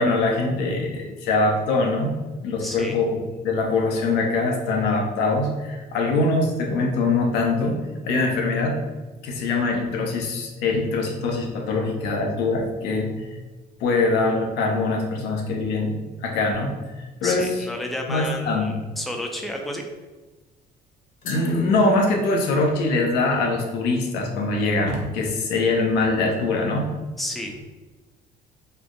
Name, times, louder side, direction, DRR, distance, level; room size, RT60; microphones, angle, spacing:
voice 1, 0.0-2.1 2.4-3.2 3.4-7.8 8.0-8.8 9.2-13.1 13.8-15.9 16.2-16.7 17.2-17.5 18.1-18.8 21.2-26.9, left 3 dB, 90° left, 1 dB, 0.7 m, -23 dB
voice 2, 2.6-3.0 17.2-19.8 27.2-27.5, left 1 dB, ahead, 2 dB, 0.4 m, -31 dB
sound 1, 21.2-25.7, left 2 dB, 50° left, 0.8 m, -43 dB
3.3 x 2.1 x 3.7 m, 1.2 s
cardioid pair, 110°, 17 cm